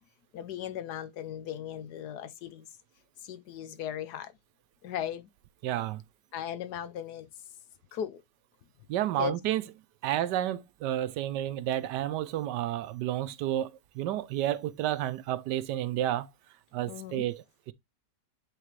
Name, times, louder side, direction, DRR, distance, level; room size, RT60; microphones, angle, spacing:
voice 1, 0.3-2.7 3.2-4.3 4.8-5.3 6.3-7.3 7.9-8.2 9.2-9.4 16.9-17.3, left 9 dB, 75° left, 1.3 m, -37 dB
voice 2, 5.6-6.0 8.9-9.6 10.0-16.3 16.7-17.7, right 12 dB, 85° right, 1.3 m, -31 dB
8.3 x 3.6 x 3.1 m
omnidirectional pair, 1.8 m